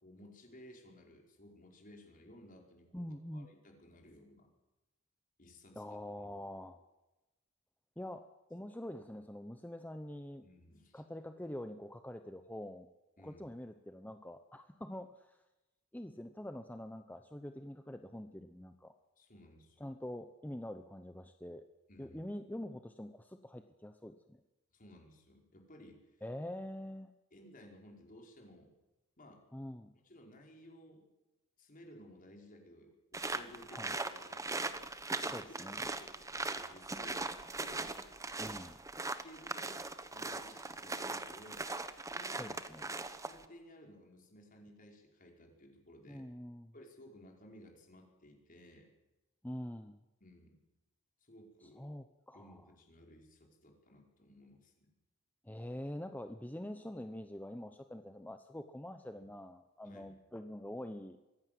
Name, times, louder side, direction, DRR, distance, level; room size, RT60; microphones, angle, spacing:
voice 1, 0.0-4.5 5.4-6.4 10.4-11.0 13.2-13.5 19.2-19.9 21.9-22.2 24.7-26.0 27.3-28.7 29.2-29.4 30.0-31.1 31.6-34.6 35.2-35.4 35.7-36.1 36.5-38.0 39.2-41.7 42.0-46.3 46.7-48.9 50.2-50.6 51.2-51.9 52.3-54.9 59.2-59.3 59.8-60.1, equal, 40° left, 1 dB, 5.1 m, -57 dB
voice 2, 2.9-3.5 5.8-6.8 8.0-10.4 10.9-12.9 13.2-15.4 15.9-18.9 19.8-21.6 22.0-24.4 26.2-27.1 29.5-29.9 33.7-34.0 35.2-35.8 38.4-38.8 42.3-42.9 46.1-46.7 49.4-50.0 51.6-52.5 55.4-61.2, left 1 dB, 10° left, 7 dB, 0.8 m, -45 dB
sound 1, 33.1-43.4, right 3 dB, 15° right, 1.1 m, -40 dB
23.5 x 16.0 x 7.7 m, 1.0 s
head